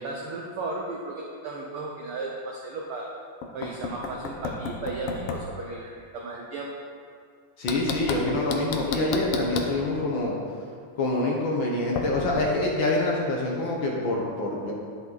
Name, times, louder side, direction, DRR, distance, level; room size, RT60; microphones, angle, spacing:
voice 1, 0.0-3.1 3.5-6.7, right 2 dB, 80° right, -1 dB, 1.2 m, -35 dB
Knock, 3.4-5.5 7.7-9.8 12.0-12.5, left 4 dB, 75° left, 1.3 m, -32 dB
voice 2, 7.6-10.3 11.0-14.7, left 2 dB, 60° left, -2 dB, 1.3 m, -26 dB
10.5 x 7.6 x 4.0 m, 2.3 s
omnidirectional pair, 3.5 m